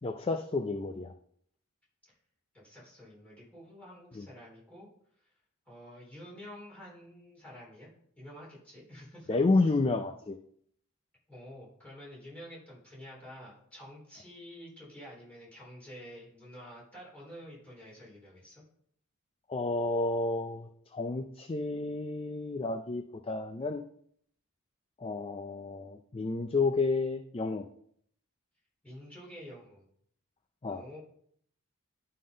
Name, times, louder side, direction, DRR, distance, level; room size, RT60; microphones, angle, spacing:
voice 1, 0.0-1.1 4.1-4.3 9.3-10.4 19.5-23.8 25.0-27.7 30.6-30.8, left 3 dB, 25° left, 6 dB, 0.4 m, -30 dB
voice 2, 2.5-4.9 5.7-7.9 8.2-9.4 11.3-18.6 28.8-29.8 30.7-31.0, equal, 5° left, -7 dB, 3.9 m, -49 dB
11.5 x 3.8 x 5.1 m, 0.65 s
head